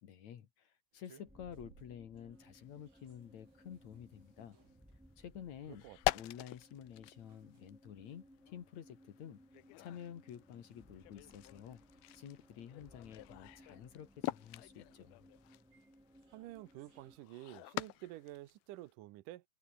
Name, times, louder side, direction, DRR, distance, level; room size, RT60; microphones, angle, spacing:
voice 1, 0.0-4.6 5.2-5.9 6.1-9.4 9.8-11.8 12.1-15.2, left 9 dB, 55° left, 2.7 m, -50 dB
sound 1, 0.9-18.6, right 7 dB, 40° right, 2.2 m, -70 dB
sound 2, 1.2-17.2, equal, ahead, 1.7 m, -63 dB
sound 3, 2.5-2.7 3.0-3.1 4.2-4.3 4.6-4.9 5.6-18.9, left 19 dB, 85° left, 2.6 m, -44 dB
voice 2, 5.7-6.2 16.3-19.4, right 16 dB, 75° right, 2.2 m, -50 dB
open air
omnidirectional pair, 4.3 m